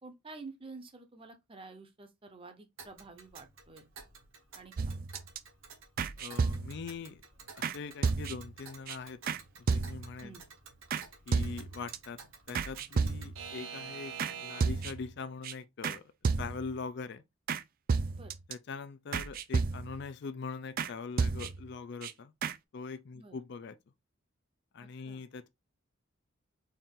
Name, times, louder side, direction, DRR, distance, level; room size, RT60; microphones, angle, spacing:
voice 1, 0.0-3.9 4.6-4.7 10.2-10.5 18.1-18.3 23.1-23.4 25.1-25.2, right 3 dB, 25° right, 0.7 m, -49 dB
Alarm / Clock, 2.8-14.9, right 6 dB, 65° right, 1.0 m, -49 dB
sound 1, 4.8-5.4 6.0-6.9 7.6-7.8 8.0-8.6 8.9-9.0 9.3-9.4 9.7-10.2 10.9-11.0 11.3-12.0 12.5-13.5 14.2-14.3 14.6-15.1 15.4-15.5 15.8-16.0 16.2-16.8 17.5-17.6 17.9-18.5 19.1-20.1 20.8-20.9 21.2-21.7 22.0-22.1 22.4-22.6, right 5 dB, 40° right, 0.3 m, -32 dB
voice 2, 6.2-7.2 7.6-9.2 9.7-10.3 11.3-12.2 12.5-14.1 14.4-16.0 16.4-17.2 18.5-22.3 22.7-23.7 24.7-25.5, left 4 dB, 50° left, 0.4 m, -42 dB
4.3 x 2.5 x 3.7 m
head